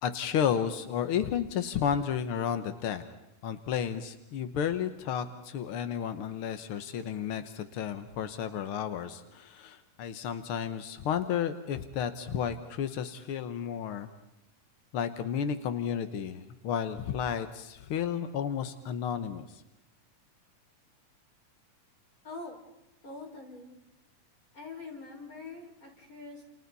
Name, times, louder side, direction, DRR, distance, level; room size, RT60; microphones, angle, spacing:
voice 1, 0.0-3.0 3.4-14.1 14.9-19.6, left 8 dB, 70° left, 10 dB, 1.3 m, -32 dB
voice 2, 22.2-22.6 23.0-23.7 24.5-26.4, left 3 dB, 25° left, 0 dB, 5.7 m, -44 dB
30.0 x 29.0 x 4.1 m, 0.93 s
omnidirectional pair, 3.8 m